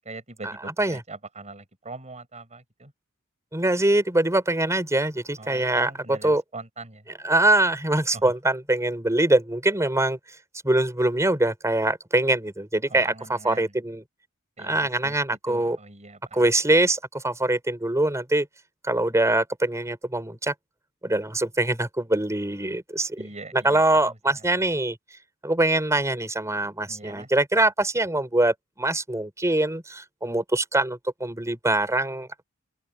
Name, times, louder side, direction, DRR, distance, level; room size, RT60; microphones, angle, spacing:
voice 1, 0.0-2.9 5.4-7.0 8.1-8.3 12.9-13.7 14.6-15.2 15.5-16.8 23.2-24.4 26.9-27.3, right 3 dB, 30° right, 7.5 m, -42 dB
voice 2, 3.5-6.4 7.2-10.2 10.6-14.0 14.6-15.8 16.3-18.5 18.8-20.5 21.0-23.2 23.5-25.0 25.4-32.4, right 1 dB, 15° right, 4.1 m, -23 dB
open air
head